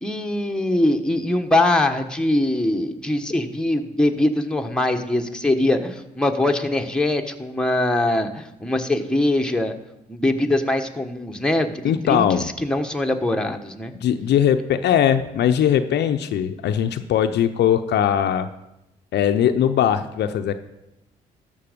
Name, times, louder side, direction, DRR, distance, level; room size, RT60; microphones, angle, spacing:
voice 1, 0.0-9.7 10.1-13.9, left 1 dB, 5° left, 3 dB, 1.3 m, -22 dB
voice 2, 11.8-12.5 14.0-18.5 19.1-20.5, left 9 dB, 65° left, 9 dB, 0.6 m, -20 dB
13.0 x 5.4 x 5.2 m, 0.90 s
hypercardioid pair, 50°, 19 cm